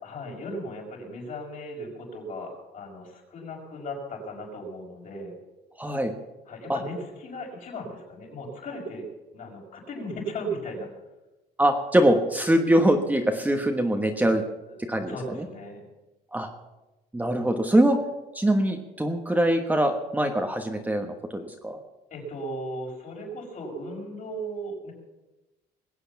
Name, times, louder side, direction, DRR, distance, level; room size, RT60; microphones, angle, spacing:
voice 1, 0.0-5.3 6.5-9.1 9.3-10.9 14.7-14.8 15.1-15.8 22.1-24.9, equal, 55° left, -1 dB, 5.7 m, -36 dB
voice 2, 5.8-6.1 6.7-6.8 11.6-14.4 14.8-15.4 16.3-16.5 17.1-18.0 18.3-21.8, right 1 dB, 10° right, 4 dB, 1.3 m, -23 dB
21.0 x 8.1 x 7.1 m, 1.0 s
cardioid pair, 110°, 17 cm